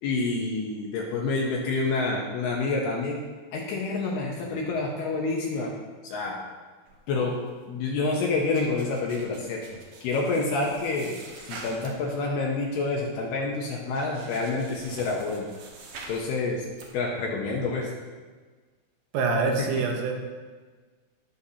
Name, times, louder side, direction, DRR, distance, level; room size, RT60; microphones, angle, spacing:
voice 1, 0.0-3.2 3.5-5.7 6.0-6.4 7.1-9.6 10.0-11.1 11.5-15.5 16.1-16.7 16.9-17.9 19.6-19.9, left 3 dB, 75° left, -1 dB, 2.5 m, -28 dB
sound 1, 6.9-7.8 8.1-12.2 12.6-13.1 13.5-13.6 13.9-16.2 16.6-16.9, right 3 dB, 60° right, 2.2 m, -45 dB
voice 2, 19.1-20.1, right 4 dB, 75° right, 1 dB, 3.3 m, -25 dB
19.5 x 6.5 x 2.8 m, 1.4 s
omnidirectional pair, 5.5 m